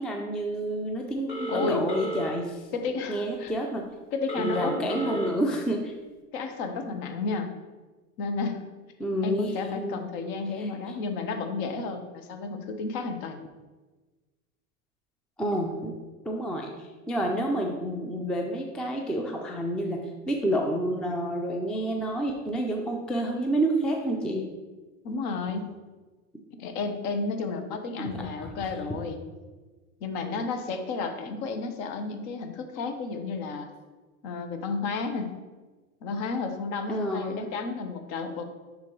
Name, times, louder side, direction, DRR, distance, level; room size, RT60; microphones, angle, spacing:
voice 1, 0.0-2.7 3.1-3.9 4.4-5.9 9.0-10.0 10.6-10.7 15.4-15.9 16.2-24.5 28.0-28.5 36.9-37.5, right 1 dB, ahead, 1 dB, 0.3 m, -29 dB
Telephone, 1.3-2.3 4.3-5.3, right 1 dB, 25° left, 2.0 m, -33 dB
voice 2, 1.5-1.8 2.7-3.5 4.1-5.3 6.3-7.5 8.2-8.6 9.2-13.4 25.0-25.7 26.6-29.2 30.0-33.7 34.2-35.3 36.0-38.4, left 4 dB, 55° left, 6 dB, 1.1 m, -32 dB
9.9 x 3.8 x 3.1 m, 1.3 s
hypercardioid pair, 105°, 44 cm